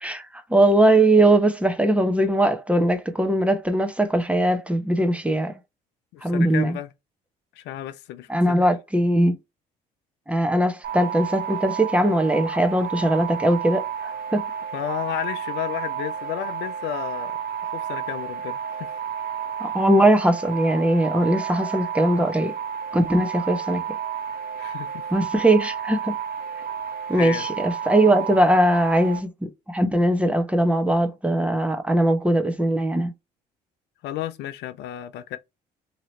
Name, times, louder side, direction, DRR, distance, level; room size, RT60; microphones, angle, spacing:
voice 1, 0.0-5.5 6.2-6.8 8.3-9.3 10.3-14.4 19.6-22.5 22.9-23.8 25.1-26.2 27.1-29.3 29.7-33.1, right 1 dB, 5° right, 0.8 m, -20 dB
voice 2, 6.1-6.9 7.5-8.6 14.7-17.4 17.7-19.0 24.6-24.9 27.2-27.5 34.0-35.4, left 12 dB, 70° left, 0.5 m, -32 dB
sound 1, 10.8-29.2, right 8 dB, 55° right, 1.0 m, -31 dB
2.9 x 2.8 x 2.8 m
supercardioid pair, 70°, 18 cm